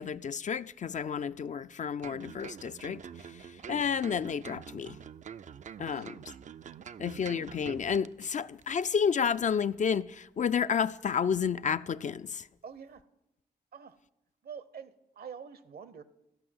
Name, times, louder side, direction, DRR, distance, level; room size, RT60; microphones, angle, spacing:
voice 1, 0.0-3.0 3.4-5.0 5.8-6.2 7.0-12.5, left 7 dB, 45° left, 0.4 m, -31 dB
sound 1, 2.0-8.3 8.6-8.7, right 7 dB, 45° right, 0.4 m, -46 dB
voice 2, 12.6-13.0 13.7-14.0 14.4-16.0, right 7 dB, 60° right, 0.8 m, -46 dB
13.0 x 5.5 x 7.7 m
supercardioid pair, 45°, 18 cm